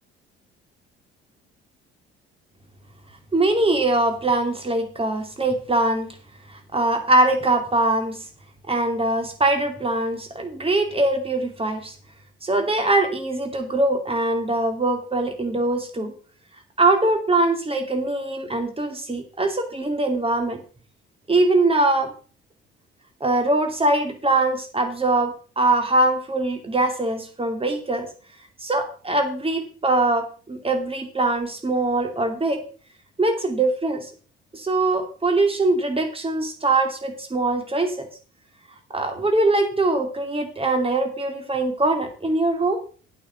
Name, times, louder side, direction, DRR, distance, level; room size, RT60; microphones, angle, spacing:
voice 1, 3.3-6.1 6.5-8.2 8.7-11.9 12.4-16.1 16.8-20.6 21.3-22.1 23.2-28.1 28.6-32.6 33.2-34.1 34.5-38.1 38.9-42.8, right 2 dB, 20° right, 5 dB, 2.8 m, -22 dB
8.7 x 6.0 x 7.9 m, 0.40 s
figure-of-eight pair, 50°, 30 cm